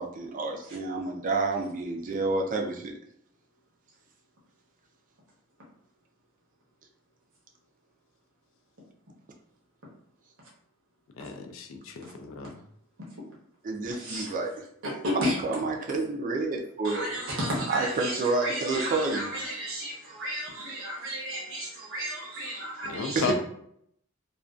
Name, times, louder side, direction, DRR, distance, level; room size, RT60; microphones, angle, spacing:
voice 1, 0.0-3.0 13.6-14.5 15.1-17.1 17.7-19.3 23.1-23.3, right 3 dB, 40° right, 2 dB, 0.4 m, -29 dB
voice 2, 11.2-12.5 22.9-23.3, left 5 dB, 65° left, 6 dB, 0.4 m, -34 dB
voice 3, 13.9-14.4 14.8-15.4 16.8-23.3, equal, 65° right, -4 dB, 0.8 m, -33 dB
2.5 x 2.3 x 2.3 m, 0.69 s
head